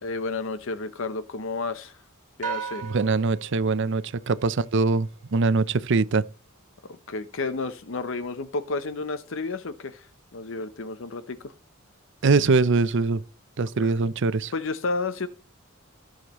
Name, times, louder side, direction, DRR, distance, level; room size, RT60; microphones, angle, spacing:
voice 1, 0.0-2.0 2.4-2.8 6.9-10.1 10.3-11.5 13.8-13.9 14.5-15.3, left 3 dB, 65° left, 0.8 m, -31 dB
sound 1, 2.4-5.0, right 7 dB, 40° right, 2.1 m, -37 dB
voice 2, 2.8-6.2 12.2-13.2 13.6-14.5, right 3 dB, 60° right, 0.6 m, -23 dB
16.5 x 6.4 x 3.0 m
head